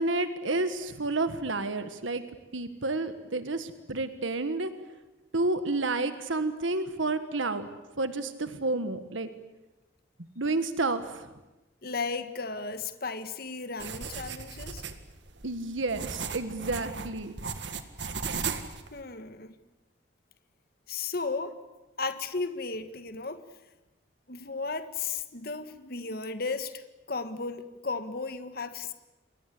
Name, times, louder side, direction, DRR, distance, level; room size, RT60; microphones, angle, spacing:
voice 1, 0.0-2.2 2.5-4.7 5.3-7.7 8.0-9.3 10.2-11.3 15.4-17.3, right 2 dB, 85° right, 10 dB, 1.6 m, -30 dB
voice 2, 11.8-14.8 18.9-19.6 20.9-21.5 22.0-23.4 24.3-28.9, left 4 dB, 50° left, 10 dB, 1.6 m, -35 dB
sound 1, 13.8-19.0, right 5 dB, 65° right, 2.0 m, -36 dB
28.5 x 22.5 x 8.4 m, 1.0 s
head